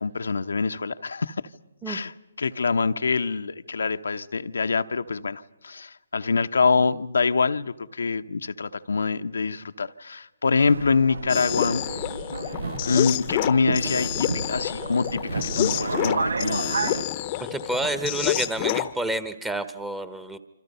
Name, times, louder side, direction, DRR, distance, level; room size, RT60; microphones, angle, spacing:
voice 1, 0.0-1.4 1.9-2.1 2.4-11.8 12.8-16.7, left 4 dB, 80° left, 0.8 m, -25 dB
Subway metro underground, 10.6-17.0, right 4 dB, 80° right, 0.8 m, -31 dB
sound 1, 11.3-18.9, left 14 dB, 30° left, 0.8 m, -28 dB
voice 2, 17.5-20.4, right 2 dB, 5° right, 1.1 m, -29 dB
27.0 x 26.0 x 5.5 m
hypercardioid pair, 145°, 0 cm